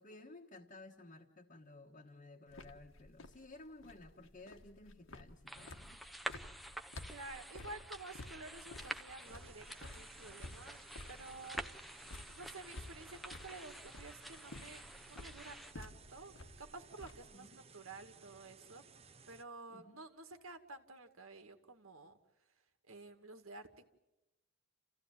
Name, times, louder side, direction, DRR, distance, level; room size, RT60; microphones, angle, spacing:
voice 1, 0.0-6.0 17.3-17.6 19.7-20.0, left 2 dB, 40° left, -1 dB, 1.4 m, -55 dB
sound 1, 2.5-17.4, left 2 dB, 70° left, 1.6 m, -53 dB
sound 2, 5.5-15.7, right 1 dB, ahead, 0.8 m, -49 dB
voice 2, 7.1-10.8 11.1-11.6 12.0-18.8 19.3-22.2 22.9-23.9, right 3 dB, 85° right, 7 dB, 2.2 m, -52 dB
sound 3, 9.2-19.4, right 5 dB, 30° right, 0.9 m, -60 dB
29.5 x 16.0 x 9.1 m, 1.0 s
head